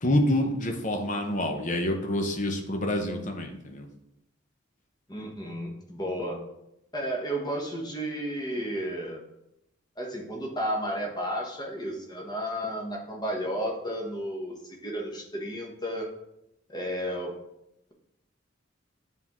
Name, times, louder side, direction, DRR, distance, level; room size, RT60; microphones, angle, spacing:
voice 1, 0.0-3.9, left 1 dB, 40° left, 3 dB, 0.8 m, -27 dB
voice 2, 5.1-6.4 6.9-9.2 10.0-16.1 16.7-17.3, equal, 20° left, 0 dB, 1.1 m, -32 dB
9.5 x 3.7 x 3.1 m, 0.83 s
head